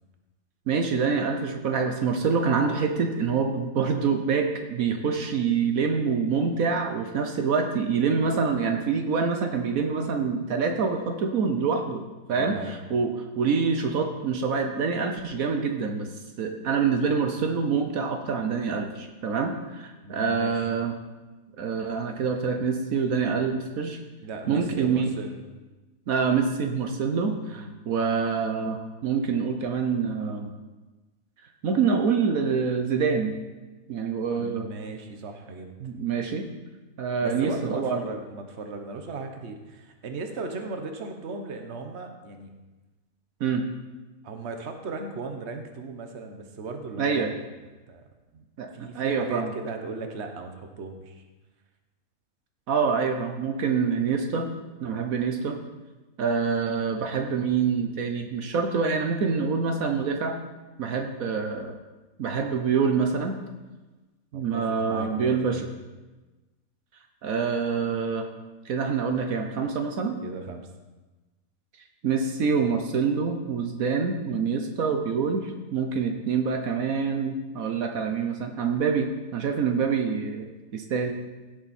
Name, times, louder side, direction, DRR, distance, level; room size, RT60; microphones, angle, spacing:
voice 1, 0.7-12.0 12.3-16.1 16.4-20.9 21.6-24.0 24.5-25.1 26.1-30.5 31.6-33.3 33.9-34.7 35.8-36.5 37.0-38.0 43.4-43.6 47.0-47.3 48.6-48.7 48.9-49.5 52.7-54.5 54.8-55.6 56.2-60.4 60.8-61.8 62.2-63.4 64.3-65.7 67.2-68.2 68.6-70.1 72.0-80.5 80.7-81.1, right 5 dB, 75° right, 4 dB, 1.4 m, -26 dB
voice 2, 12.3-12.7 20.0-20.7 24.2-25.4 27.4-27.7 34.3-35.7 37.2-42.5 44.2-47.2 47.9-48.0 48.3-48.4 48.7-51.2 64.3-65.7 70.2-70.7, right 3 dB, 50° right, 5 dB, 1.3 m, -37 dB
16.5 x 7.7 x 4.3 m, 1.2 s
omnidirectional pair, 1.5 m